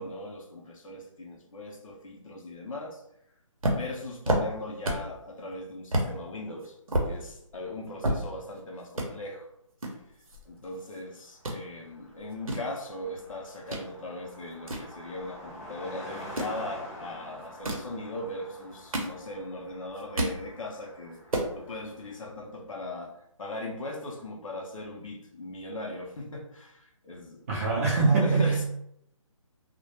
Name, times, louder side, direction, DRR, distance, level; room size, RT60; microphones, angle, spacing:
voice 1, 0.0-3.0 3.7-6.8 7.1-9.5 10.5-21.2 21.5-27.4 28.2-28.6, left 1 dB, 70° left, 1 dB, 0.6 m, -39 dB
sound 1, 3.6-5.2 5.5-5.6 5.9-6.1 6.6-8.6 8.9-9.1 9.8-11.0 11.2-11.6 12.2-13.9 14.3-15.6 16.2-16.6 17.4-17.9 18.6-19.5 19.9-20.4 20.8-20.9 21.1-21.5, right 1 dB, 90° right, 0.7 m, -30 dB
Car passing by, 11.0-11.1 11.3-22.3, left 1 dB, 30° left, 0.6 m, -47 dB
voice 2, 27.5-28.6, right 4 dB, 30° right, -5 dB, 0.5 m, -23 dB
2.1 x 2.1 x 2.8 m, 0.77 s
hypercardioid pair, 160°, 17 cm